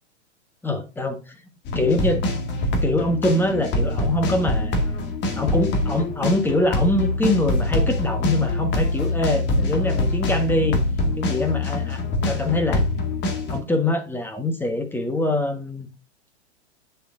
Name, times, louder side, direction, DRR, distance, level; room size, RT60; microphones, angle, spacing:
voice 1, 0.6-1.3 1.7-2.2 2.8-4.8 5.4-10.8 11.2-12.8 13.5-15.9, left 1 dB, 5° left, 1.4 m, -24 dB
sound 1, 1.6-13.6, left 2 dB, 30° left, 2.0 m, -24 dB
8.5 x 6.8 x 2.6 m
hypercardioid pair, 110°, 34 cm